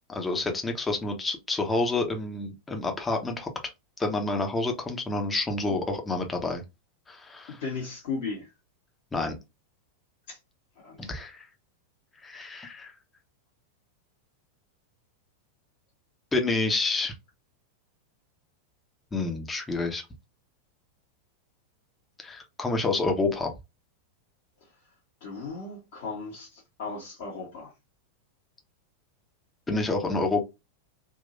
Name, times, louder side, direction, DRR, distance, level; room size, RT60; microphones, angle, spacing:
voice 1, 0.1-3.5 4.0-6.6 7.1-7.6 9.1-9.4 11.0-11.5 12.2-12.9 16.3-17.1 19.1-20.0 22.2-23.5 29.7-30.4, left 3 dB, 15° left, 1.0 m, -28 dB
voice 2, 7.5-8.5 10.3-10.4 10.7-11.1 24.6-24.7 25.2-27.7, left 4 dB, 50° left, 1.6 m, -36 dB
3.7 x 2.9 x 2.6 m
figure-of-eight pair, 90°, 0 cm